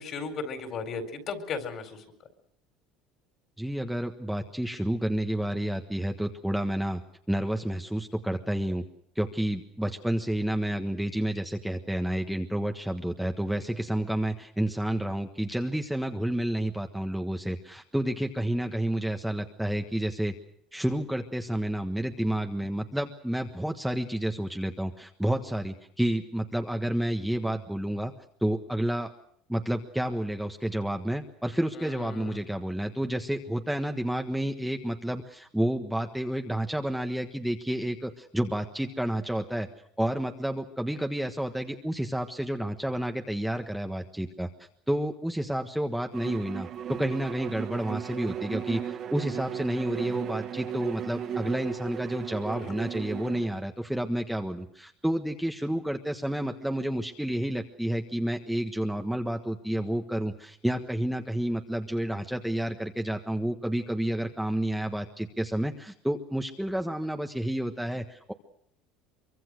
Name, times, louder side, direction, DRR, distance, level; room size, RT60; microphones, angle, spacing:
voice 1, 0.0-2.0 31.7-32.5 52.4-52.7, left 4 dB, 45° left, 7 dB, 4.4 m, -36 dB
voice 2, 3.6-7.0 7.3-8.9 9.1-20.3 20.7-28.1 28.4-29.1 29.5-39.7 40.0-44.5 44.9-68.3, right 1 dB, ahead, 4 dB, 1.4 m, -30 dB
Bowed string instrument, 46.1-53.5, right 9 dB, 45° right, 1.6 m, -36 dB
24.0 x 24.0 x 6.4 m, 0.67 s
supercardioid pair, 115°, 0 cm